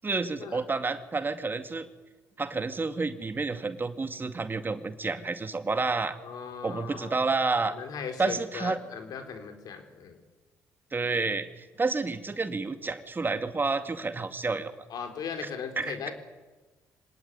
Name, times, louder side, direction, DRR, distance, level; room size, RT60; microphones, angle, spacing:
voice 1, 0.0-1.9 2.4-6.2 6.6-7.8 8.2-8.8 10.9-14.7 15.8-16.1, right 3 dB, 30° right, 9 dB, 2.3 m, -30 dB
voice 2, 6.2-7.3 7.7-10.2 14.9-16.1, left 6 dB, 65° left, 6 dB, 4.5 m, -38 dB
25.0 x 18.5 x 9.8 m, 1.2 s
supercardioid pair, 60°, 7 cm